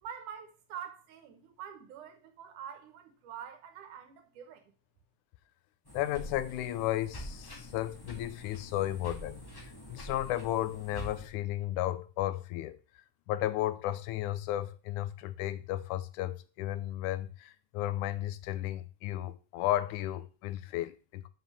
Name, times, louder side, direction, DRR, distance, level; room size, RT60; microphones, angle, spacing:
voice 1, 0.0-4.7, right 8 dB, 85° right, 2.8 m, -46 dB
sound 1, 5.8-11.3, equal, 10° left, 1.7 m, -46 dB
voice 2, 5.9-9.4 9.9-12.8 13.3-21.3, left 14 dB, 90° left, 2.1 m, -34 dB
6.1 x 6.0 x 6.7 m
omnidirectional pair, 3.5 m